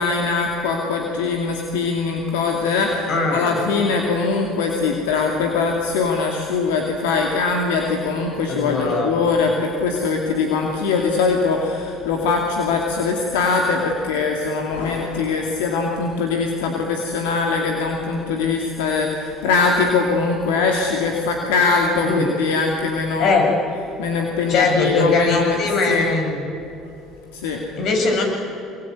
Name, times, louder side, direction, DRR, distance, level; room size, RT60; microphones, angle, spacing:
voice 1, 0.0-23.4 24.0-25.6 25.9-26.1 27.3-27.7, left 4 dB, 85° left, 1 dB, 2.6 m, -22 dB
voice 2, 3.1-3.7 8.5-9.1 22.0-22.3 23.2-23.5 24.5-26.5 27.8-28.2, left 3 dB, 60° left, 2 dB, 7.1 m, -20 dB
25.0 x 22.5 x 9.5 m, 2.7 s
supercardioid pair, 75°, 0 cm